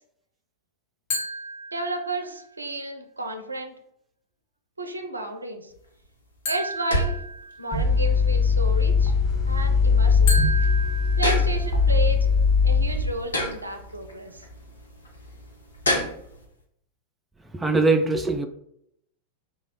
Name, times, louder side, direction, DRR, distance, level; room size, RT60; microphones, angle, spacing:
sound 1, 1.1-2.4 6.4-8.0 10.3-12.0, equal, 45° left, 1.1 m, -33 dB
voice 1, 1.7-3.7 4.8-5.7 6.5-7.2 7.6-9.1 9.5-10.4 11.2-12.3 12.6-14.4, right 2 dB, 80° right, 5 dB, 0.4 m, -32 dB
sound 2, 5.7-16.5, left 1 dB, 75° left, 0.7 m, -33 dB
sound 3, 7.7-13.1, left 5 dB, 15° left, 1.4 m, -20 dB
voice 2, 17.5-18.5, right 3 dB, 10° right, 6 dB, 0.3 m, -21 dB
3.0 x 2.3 x 4.3 m, 0.74 s
figure-of-eight pair, 90°, 0 cm